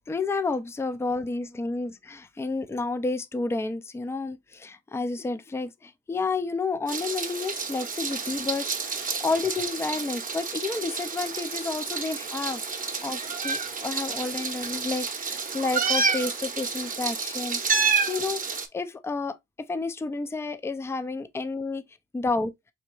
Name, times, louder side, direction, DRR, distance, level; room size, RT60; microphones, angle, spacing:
voice 1, 0.1-19.4 19.7-21.8 22.1-22.5, left 3 dB, 10° left, 0.4 m, -31 dB
Meow, 6.9-18.7, right 5 dB, 30° right, 0.8 m, -29 dB
3.9 x 3.4 x 2.9 m
cardioid pair, 90°, 30 cm